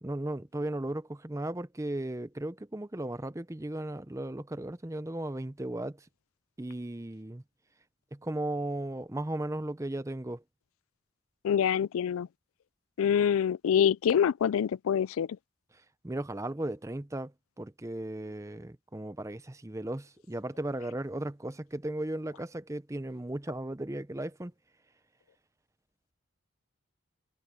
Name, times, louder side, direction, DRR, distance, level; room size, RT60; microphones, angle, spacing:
voice 1, 0.0-6.1 6.6-7.4 8.1-10.4 16.0-24.5, right 1 dB, 15° right, 0.6 m, -36 dB
voice 2, 11.4-12.3 13.0-15.4, left 8 dB, 85° left, 0.3 m, -26 dB
head